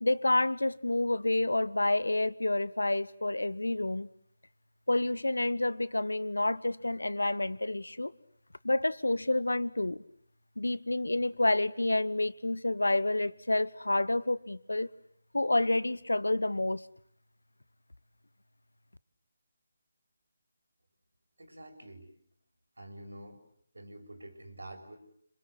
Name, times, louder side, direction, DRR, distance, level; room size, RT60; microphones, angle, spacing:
voice 1, 0.0-4.1 4.9-8.1 8.6-10.0 10.6-14.9 15.3-16.8, left 2 dB, 80° left, 1.1 m, -29 dB
voice 2, 21.4-22.0 22.8-23.4 23.7-25.0, right 1 dB, 75° right, 6.4 m, -47 dB
27.0 x 26.5 x 8.1 m
figure-of-eight pair, 155°, 0 cm